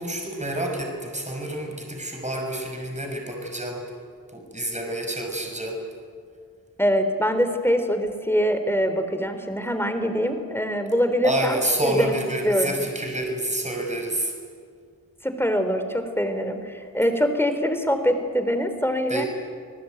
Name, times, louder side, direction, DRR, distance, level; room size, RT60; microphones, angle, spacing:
voice 1, 0.0-3.8 4.3-5.8 11.2-14.3 19.1-19.3, right 1 dB, 20° right, 1 dB, 6.1 m, -28 dB
voice 2, 6.8-12.2 12.4-12.8 15.2-19.2, equal, 5° left, 7 dB, 3.8 m, -24 dB
29.0 x 19.5 x 9.3 m, 2.2 s
wide cardioid pair, 45°, 35 cm